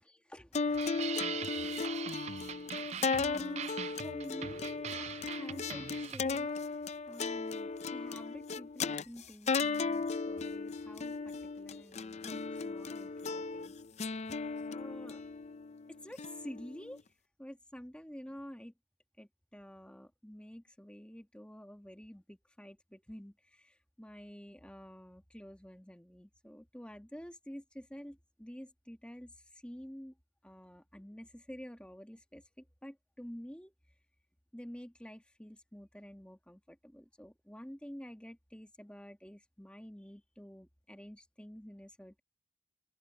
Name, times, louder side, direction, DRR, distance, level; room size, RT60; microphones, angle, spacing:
voice 1, 0.3-13.7 14.7-15.3 15.9-17.0 17.4-18.7 19.2-30.1 30.4-33.7 34.5-42.2, equal, 5° left, 1.5 m, -50 dB
sound 1, 0.5-17.0, left 4 dB, 35° left, 0.5 m, -36 dB
sound 2, 0.7-6.5, right 8 dB, 35° right, 0.4 m, -42 dB
head